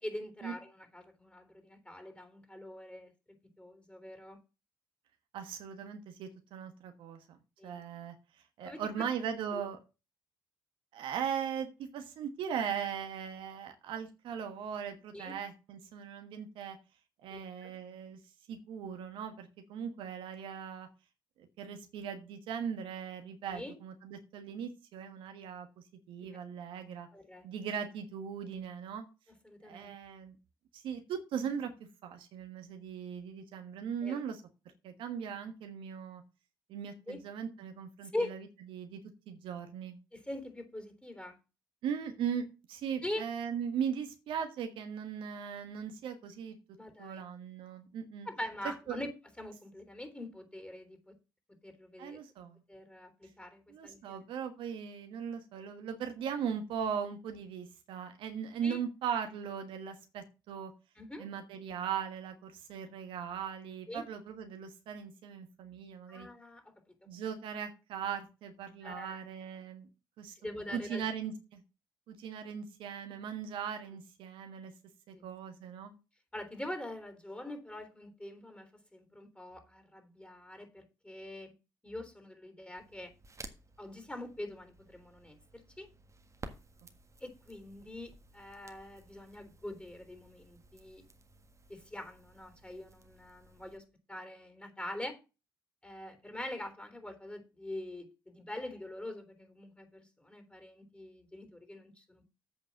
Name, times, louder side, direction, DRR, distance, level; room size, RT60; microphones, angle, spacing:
voice 1, 0.0-3.1 3.6-4.4 7.6-7.8 8.7-9.1 9.5-9.6 15.1-15.4 17.3-17.7 23.5-23.8 27.1-27.5 29.4-29.9 34.0-34.2 37.1-37.2 38.1-38.3 40.1-41.4 43.0-43.2 46.8-47.2 48.3-49.1 49.4-51.1 51.6-52.2 52.7-54.2 58.6-58.8 61.0-61.3 63.9-64.0 66.1-66.9 68.8-69.2 70.4-71.0 75.1-75.3 76.3-81.5 81.8-83.1 83.8-85.9 87.2-91.0 91.7-95.2 95.8-102.2, left 1 dB, 15° left, 7 dB, 3.6 m, -44 dB
voice 2, 5.3-7.4 7.6-8.1 8.6-9.8 10.9-16.8 17.2-18.2 18.5-20.9 21.4-25.7 26.1-27.1 27.4-29.1 29.6-30.4 30.7-31.7 32.0-34.4 34.8-36.2 36.7-39.0 39.3-40.0 41.8-46.6 47.0-48.3 48.9-49.0 52.0-52.6 53.7-60.7 61.2-66.3 67.1-69.9 70.2-70.3 70.7-71.6 72.1-74.7 75.1-75.9 86.5-86.6, right 7 dB, 75° right, 6 dB, 1.4 m, -39 dB
Crackle, 82.8-93.8, right 3 dB, 35° right, 1.6 m, -55 dB
8.4 x 4.8 x 7.5 m, 0.30 s
hypercardioid pair, 45°, 9 cm